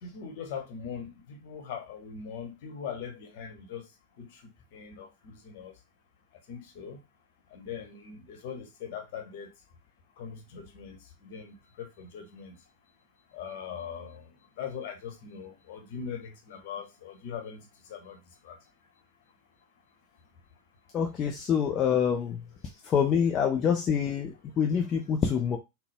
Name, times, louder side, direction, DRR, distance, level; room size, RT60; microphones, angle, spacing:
voice 1, 0.0-3.8 4.2-4.4 4.7-5.7 6.5-7.0 7.5-9.5 10.2-12.5 13.3-14.3 14.6-17.6 17.9-18.2 18.4-18.6, left 7 dB, 50° left, 1.1 m, -41 dB
voice 2, 20.9-22.4 22.8-25.6, left 7 dB, 30° left, 0.5 m, -26 dB
3.8 x 2.2 x 3.5 m
figure-of-eight pair, 90°, 0 cm